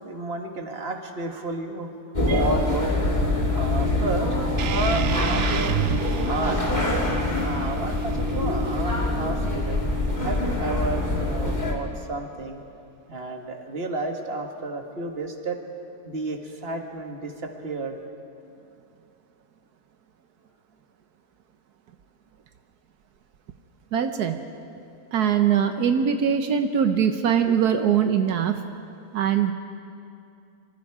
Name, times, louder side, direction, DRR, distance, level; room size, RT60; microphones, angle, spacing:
voice 1, 0.0-1.9 2.3-3.0 3.5-5.8 6.2-7.1 7.4-9.8 10.2-12.6 13.1-15.6 16.1-18.0, right 2 dB, 40° right, 3 dB, 2.0 m, -31 dB
sound 1, 2.1-11.7, left 2 dB, 30° left, 2.6 m, -25 dB
sound 2, 4.6-9.6, right 10 dB, 65° right, 1.0 m, -31 dB
voice 2, 23.9-24.4 25.1-28.6 29.1-29.5, right 8 dB, 85° right, 7 dB, 1.4 m, -22 dB
26.0 x 25.0 x 4.9 m, 2.6 s
omnidirectional pair, 1.6 m